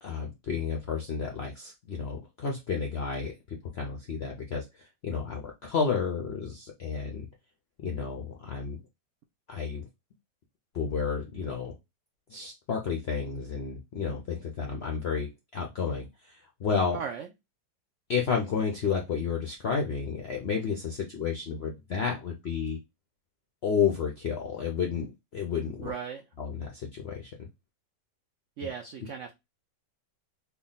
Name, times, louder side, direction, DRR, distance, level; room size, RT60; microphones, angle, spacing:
voice 1, 0.0-7.3 7.8-8.8 9.5-9.9 10.7-11.7 12.3-17.0 18.1-22.8 23.6-25.9 26.4-27.3 28.6-28.7, left 6 dB, 70° left, 0.6 m, -31 dB
voice 2, 16.9-17.3 25.8-26.2 28.6-29.3, right 7 dB, 85° right, 0.6 m, -36 dB
3.4 x 2.2 x 3.9 m
omnidirectional pair, 1.9 m